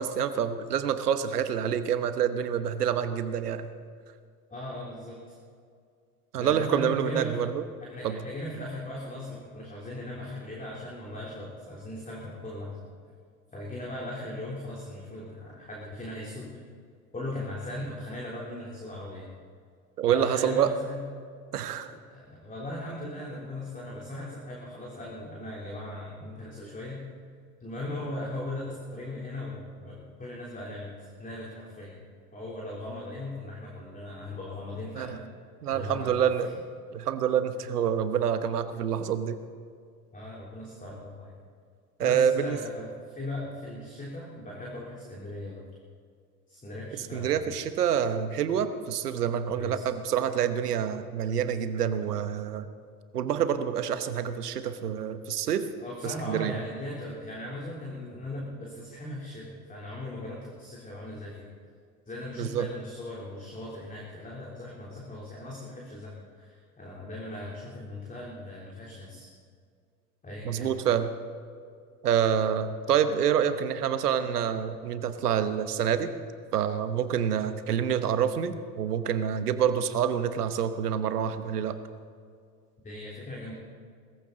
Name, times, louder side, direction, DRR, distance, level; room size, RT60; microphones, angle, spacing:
voice 1, 0.0-3.7 6.3-7.6 8.0-8.2 20.0-20.7 21.5-21.9 35.0-35.2 35.6-36.5 36.9-39.4 42.0-42.6 47.1-52.7 53.1-55.6 56.0-56.6 62.4-62.7 70.4-71.1 72.0-76.1 76.5-81.7, right 8 dB, 85° right, 10 dB, 1.2 m, -27 dB
voice 2, 4.5-5.3 6.3-7.4 7.8-12.8 13.5-16.6 17.1-19.3 20.1-21.0 21.9-27.1 27.6-32.0 32.3-35.1 35.7-36.3 40.1-41.3 42.0-45.7 46.5-47.6 49.5-49.8 55.8-61.5 62.1-69.3 70.2-70.7 82.8-83.5, left 1 dB, 15° left, -4 dB, 3.6 m, -38 dB
20.0 x 14.5 x 4.0 m, 2.2 s
hypercardioid pair, 80°, 45 cm